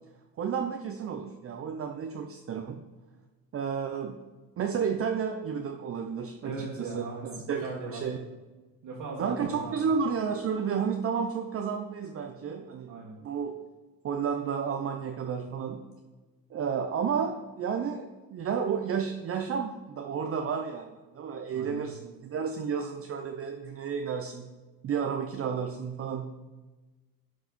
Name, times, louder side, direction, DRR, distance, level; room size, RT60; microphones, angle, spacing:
voice 1, 0.4-2.8 3.5-4.2 4.6-7.0 7.5-7.6 7.9-8.2 9.2-12.9 13.2-13.6 14.0-15.8 16.5-24.5 24.8-26.3, right 6 dB, 40° right, 4 dB, 0.6 m, -31 dB
voice 2, 6.4-8.0 8.8-9.9 12.9-13.2 21.5-21.8, right 3 dB, 65° right, -5 dB, 1.7 m, -39 dB
11.0 x 4.7 x 4.0 m, 1.2 s
cardioid pair, 130°, 37 cm